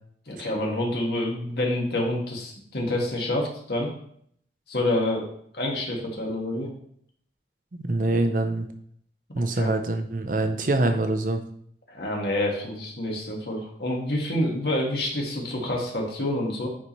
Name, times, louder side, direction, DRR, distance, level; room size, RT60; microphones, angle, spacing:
voice 1, 0.3-3.9 4.7-5.3 5.5-6.7 9.6-9.7 11.9-16.7, left 1 dB, 60° left, -1 dB, 1.8 m, -27 dB
voice 2, 7.7-8.7 9.4-11.4, right 2 dB, 45° right, 7 dB, 0.6 m, -25 dB
9.5 x 4.2 x 3.1 m, 0.64 s
head